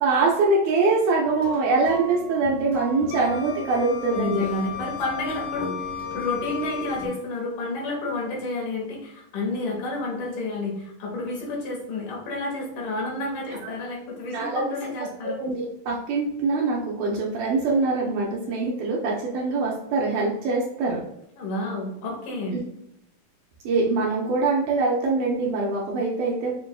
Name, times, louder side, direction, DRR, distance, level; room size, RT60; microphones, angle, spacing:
voice 1, 0.0-4.5 13.6-13.7 14.3-14.6 15.4-21.0 22.5-22.6 23.7-26.5, right 3 dB, 75° right, -3 dB, 1.9 m, -23 dB
sound 1, 1.2-7.1, left 1 dB, 50° left, 1.4 m, -37 dB
Wind instrument woodwind instrument, 3.1-7.2, left 10 dB, 90° left, 1.6 m, -35 dB
voice 2, 4.1-5.9 6.1-15.4 21.4-22.6, left 2 dB, 70° left, -2 dB, 2.6 m, -30 dB
6.7 x 2.4 x 2.2 m, 0.79 s
omnidirectional pair, 3.9 m